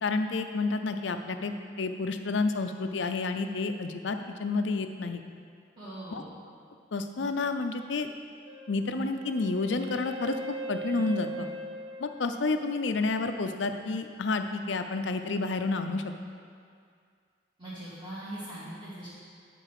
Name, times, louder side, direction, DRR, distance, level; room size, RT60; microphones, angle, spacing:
voice 1, 0.0-5.2 6.1-6.2 6.9-8.1 8.7-10.3 10.7-11.5 12.0-16.0, left 3 dB, 80° left, 7 dB, 0.5 m, -30 dB
voice 2, 5.8-6.3 17.6-19.1, right 1 dB, 25° right, -15 dB, 2.2 m, -41 dB
Wind instrument woodwind instrument, 8.5-13.3, right 1 dB, 65° right, 0.6 m, -40 dB
10.0 x 4.6 x 5.8 m, 2.2 s
head